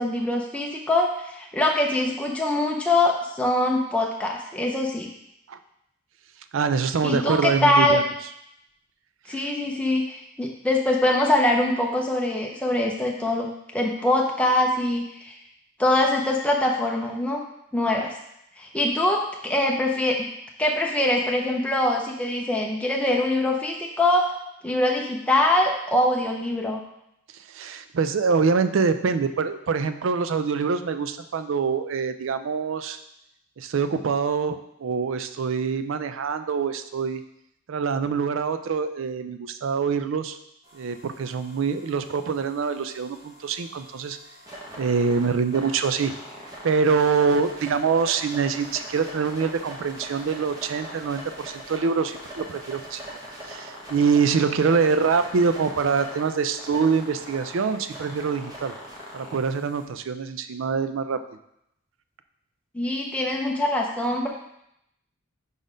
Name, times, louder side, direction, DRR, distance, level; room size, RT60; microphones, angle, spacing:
voice 1, 0.0-5.1 7.0-8.1 9.3-15.4 15.8-17.4 17.7-18.1 18.6-20.2 20.6-24.3 24.6-26.8 62.7-64.3, left 1 dB, 5° left, -1 dB, 0.5 m, -23 dB
voice 2, 6.5-8.0 9.3-9.4 27.5-33.0 33.6-37.2 37.7-40.4 40.7-44.2 44.8-46.1 46.6-53.0 53.5-58.7 59.1-61.2, right 5 dB, 65° right, 10 dB, 0.4 m, -25 dB
sound 1, 40.6-59.8, equal, 15° right, 1.1 m, -42 dB
5.3 x 4.1 x 5.0 m, 0.80 s
head